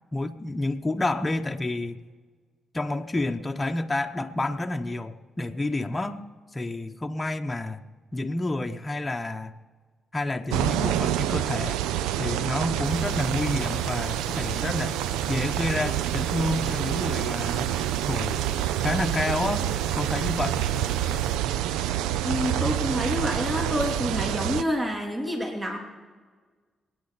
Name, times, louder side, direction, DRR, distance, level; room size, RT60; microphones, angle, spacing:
voice 1, 0.1-2.0 2.7-6.2 6.5-7.8 8.1-9.5 10.1-11.8 12.2-14.9 15.3-17.7 18.1-18.4 18.7-19.7 20.0-20.6, left 2 dB, 25° left, 4 dB, 1.0 m, -29 dB
sound 1, 10.5-24.6, right 12 dB, 90° right, 0.5 m, -27 dB
sound 2, 12.8-21.4, equal, 5° right, 3.0 m, -42 dB
voice 2, 22.2-25.8, equal, 25° right, 1 dB, 3.1 m, -28 dB
27.0 x 9.7 x 4.1 m, 1.5 s
supercardioid pair, 50°, 0 cm